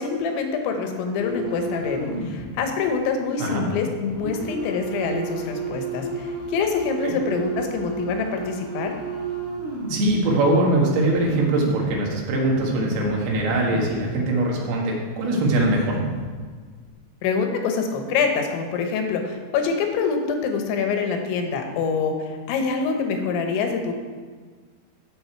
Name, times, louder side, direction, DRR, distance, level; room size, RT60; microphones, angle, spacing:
voice 1, 0.0-8.9 17.2-23.9, left 5 dB, 75° left, 4 dB, 3.3 m, -25 dB
sound 1, 1.2-2.5 2.9-3.0 4.1-10.2 10.7-10.8 11.1-12.0 12.4-14.0 14.3-14.4 15.2-15.3 15.4-16.3 16.8-17.0, right 2 dB, 15° left, 0.4 m, -32 dB
voice 2, 9.9-16.0, right 2 dB, 60° right, -2 dB, 3.5 m, -22 dB
15.0 x 6.6 x 4.5 m, 1.5 s
omnidirectional pair, 5.5 m